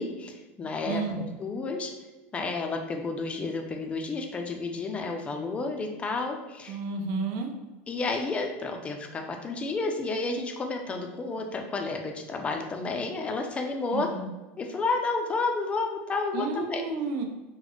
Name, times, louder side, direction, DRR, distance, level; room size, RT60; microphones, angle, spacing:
voice 1, 0.0-1.0 1.4-1.9 2.3-6.8 7.9-14.1 14.6-16.8, left 3 dB, 20° left, 3 dB, 0.4 m, -31 dB
voice 2, 0.8-1.3 6.7-7.5 13.9-14.3 16.3-17.2, right 4 dB, 65° right, 3 dB, 0.6 m, -31 dB
4.0 x 2.1 x 3.0 m, 1.2 s
supercardioid pair, 145°, 7 cm